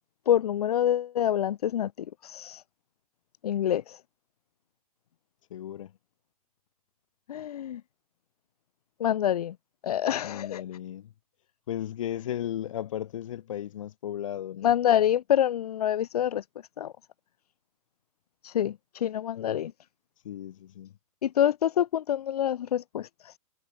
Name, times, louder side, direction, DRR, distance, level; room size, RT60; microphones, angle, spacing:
voice 1, 0.3-2.6 3.4-4.0 7.3-7.8 9.0-9.6 9.8-10.6 14.6-16.4 16.8-16.9 18.4-19.7 21.2-23.4, left 10 dB, 85° left, 0.7 m, -26 dB
voice 2, 5.5-5.9 10.2-11.1 11.7-14.7 20.2-20.9, left 11 dB, 55° left, 1.3 m, -35 dB
hypercardioid pair, 170°, 19 cm